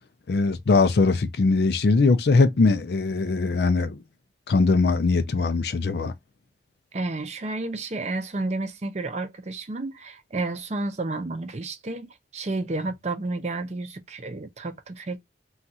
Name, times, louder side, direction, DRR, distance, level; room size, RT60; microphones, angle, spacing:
voice 1, 0.3-4.0 4.5-6.1, left 3 dB, 65° left, 0.4 m, -21 dB
voice 2, 6.9-12.1 12.3-15.2, right 2 dB, 40° right, 0.5 m, -31 dB
2.5 x 2.4 x 4.1 m
head